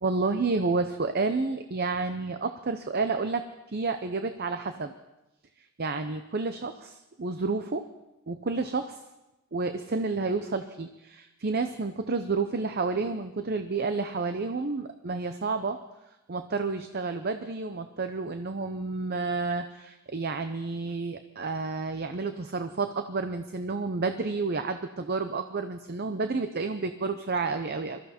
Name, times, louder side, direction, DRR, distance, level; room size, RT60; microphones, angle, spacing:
voice 1, 0.0-4.9 5.8-7.8 8.3-9.0 9.5-15.8 16.3-28.0, right 3 dB, 45° right, 8 dB, 0.7 m, -30 dB
22.5 x 14.0 x 4.3 m, 0.96 s
head